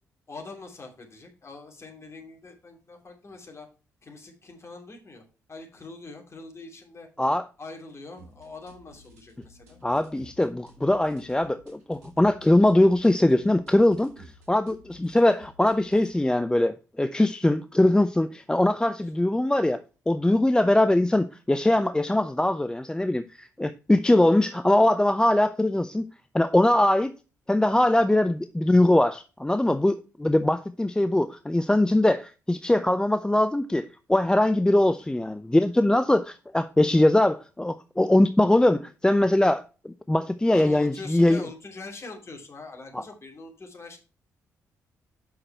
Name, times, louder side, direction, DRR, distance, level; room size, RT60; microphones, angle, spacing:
voice 1, 0.3-3.7 4.0-5.2 5.5-7.1 7.6-9.8 40.5-44.0, left 3 dB, 35° left, 2.9 m, -43 dB
sound 1, 8.2-16.2, equal, 85° right, 1.5 m, -53 dB
voice 2, 9.8-19.8 20.1-26.0 26.3-27.1 27.5-41.4 42.9-43.0, left 1 dB, 10° left, 0.5 m, -22 dB
8.0 x 5.7 x 4.4 m
figure-of-eight pair, 40°, 8 cm